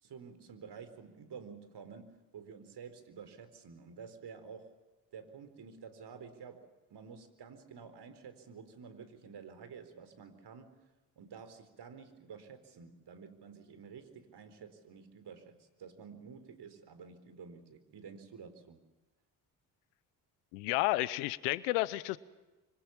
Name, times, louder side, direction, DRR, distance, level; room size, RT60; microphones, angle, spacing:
voice 1, 0.0-4.7 5.1-10.7 11.2-18.8, right 6 dB, 60° right, 10 dB, 4.3 m, -50 dB
voice 2, 20.5-22.2, left 20 dB, 85° left, 18 dB, 1.0 m, -31 dB
26.0 x 25.0 x 7.2 m, 1.1 s
hypercardioid pair, 50°, 45 cm